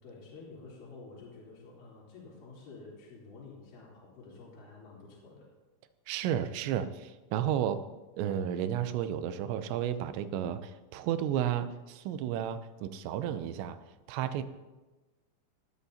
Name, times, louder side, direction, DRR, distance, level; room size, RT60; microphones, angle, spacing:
voice 1, 0.0-5.5, left 3 dB, 50° left, -6 dB, 5.0 m, -50 dB
voice 2, 6.1-7.8 8.2-13.8 14.1-14.4, right 10 dB, 85° right, 12 dB, 3.0 m, -32 dB
20.0 x 13.0 x 2.8 m, 1.2 s
omnidirectional pair, 5.0 m